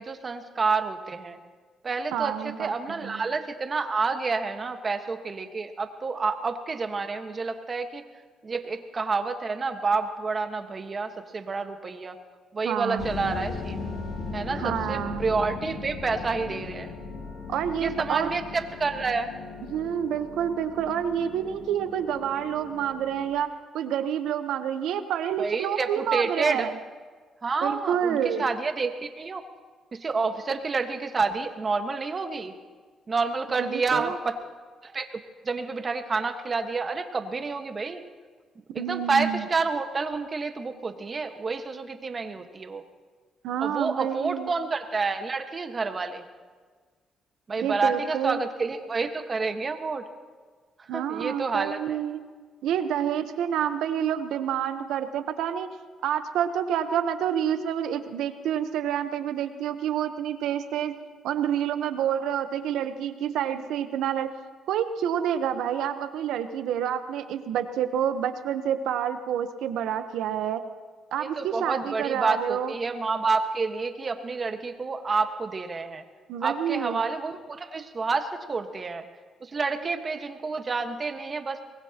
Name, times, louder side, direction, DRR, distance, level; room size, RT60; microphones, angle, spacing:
voice 1, 0.0-1.4 1.8-8.0 8.4-12.2 12.5-13.8 14.3-16.9 17.8-19.3 25.4-26.7 27.4-29.4 29.9-32.5 33.1-34.4 34.8-35.1 35.4-38.0 38.7-42.8 43.6-46.2 47.5-50.1 50.8-52.0 71.2-76.0 76.4-79.1 79.4-81.6, right 4 dB, 35° right, 6 dB, 1.4 m, -29 dB
voice 2, 2.1-3.2 12.6-13.1 14.6-15.2 17.5-18.3 19.7-26.7 27.6-28.5 33.6-34.1 38.7-39.5 43.4-44.5 47.6-48.4 50.9-52.2 52.6-55.7 56.0-60.9 61.2-64.3 64.7-70.6 71.1-72.7 76.3-77.0 79.8-79.9, right 9 dB, 85° right, 9 dB, 1.0 m, -28 dB
sound 1, 13.0-23.3, left 4 dB, 60° left, 2.2 m, -38 dB
23.5 x 20.0 x 2.9 m, 1.5 s
cardioid pair, 90°, 0 cm